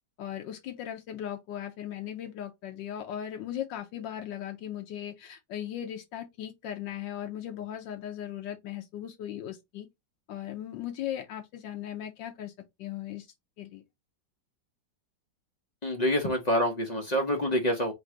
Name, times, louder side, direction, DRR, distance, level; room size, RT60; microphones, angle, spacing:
voice 1, 0.2-9.9 10.3-12.5 12.8-13.3 13.6-13.8, left 10 dB, 80° left, 1.4 m, -38 dB
voice 2, 15.8-17.9, equal, 65° left, 0.4 m, -27 dB
3.9 x 2.6 x 4.5 m
omnidirectional pair, 2.0 m